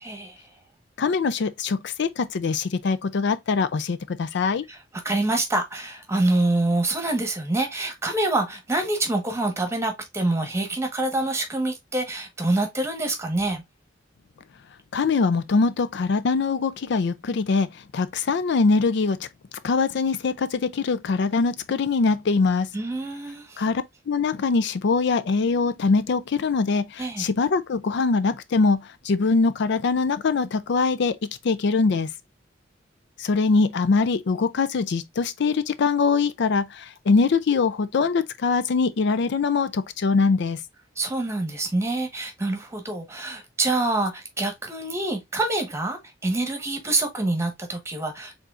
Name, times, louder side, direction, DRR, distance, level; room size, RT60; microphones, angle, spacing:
voice 1, 0.0-0.5 4.7-4.8 5.0-13.6 22.7-23.6 27.0-27.2 40.9-48.4, right 2 dB, 15° right, 1.3 m, -26 dB
voice 2, 1.0-4.6 14.9-19.3 19.6-22.7 23.6-31.2 31.4-32.1 33.2-40.6, left 4 dB, 65° left, 0.4 m, -23 dB
4.8 x 3.7 x 2.5 m
head